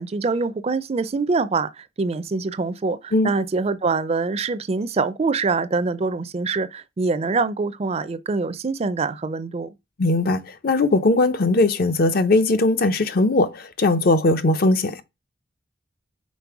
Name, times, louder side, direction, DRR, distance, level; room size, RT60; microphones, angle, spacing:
voice 1, 0.0-9.7, right 4 dB, 35° right, 0.4 m, -24 dB
voice 2, 10.0-15.0, left 2 dB, 55° left, 0.6 m, -19 dB
5.3 x 4.2 x 4.7 m
head